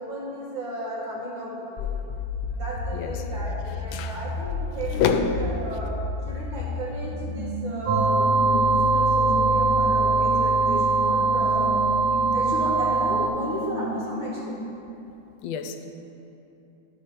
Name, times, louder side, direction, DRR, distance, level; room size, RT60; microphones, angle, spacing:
voice 1, 0.0-1.9 2.5-11.7 12.3-14.6, equal, 70° right, -6 dB, 2.5 m, -34 dB
sound 1, 1.8-7.2, left 3 dB, 65° left, 0.6 m, -32 dB
voice 2, 4.9-5.4 15.4-15.9, left 6 dB, 80° left, 7 dB, 1.4 m, -26 dB
sound 2, 7.3-14.6, right 2 dB, 35° right, 0.8 m, -34 dB
sound 3, 7.9-13.3, right 3 dB, 90° right, 1.7 m, -21 dB
12.0 x 4.9 x 4.5 m, 2.9 s
omnidirectional pair, 2.2 m